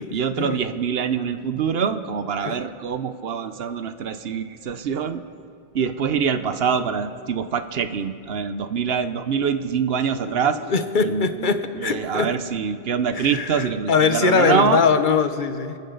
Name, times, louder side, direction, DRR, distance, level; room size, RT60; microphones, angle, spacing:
voice 1, 0.1-5.2 5.7-10.6 11.0-11.5 11.8-14.8, right 6 dB, 75° right, 10 dB, 1.0 m, -24 dB
voice 2, 10.2-12.4 13.1-15.8, left 5 dB, 55° left, 9 dB, 1.0 m, -22 dB
29.0 x 10.5 x 3.9 m, 2.4 s
omnidirectional pair, 1.0 m